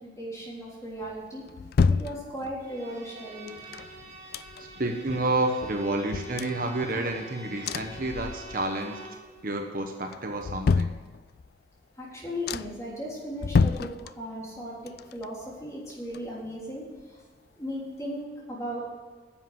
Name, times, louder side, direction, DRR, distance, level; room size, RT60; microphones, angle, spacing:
voice 1, 0.0-1.5 1.9-3.5 12.0-16.8 17.1-17.2 17.5-18.8, equal, 15° left, -5 dB, 3.5 m, -37 dB
sound 1, 1.0-2.8 3.5-4.9 5.2-5.3 5.6-7.2 7.6-8.8 9.1-9.6 10.1-11.6 12.0-12.1 12.5-12.9 13.4-14.6 14.9-16.7 17.0-17.1, left 4 dB, 55° left, 0.3 m, -29 dB
Bowed string instrument, 2.6-9.3, right 2 dB, 20° right, 3.8 m, -46 dB
voice 2, 4.6-9.0 9.4-11.0 18.0-18.2, right 2 dB, 50° right, 3 dB, 1.1 m, -30 dB
10.5 x 7.7 x 7.8 m, 1.5 s
head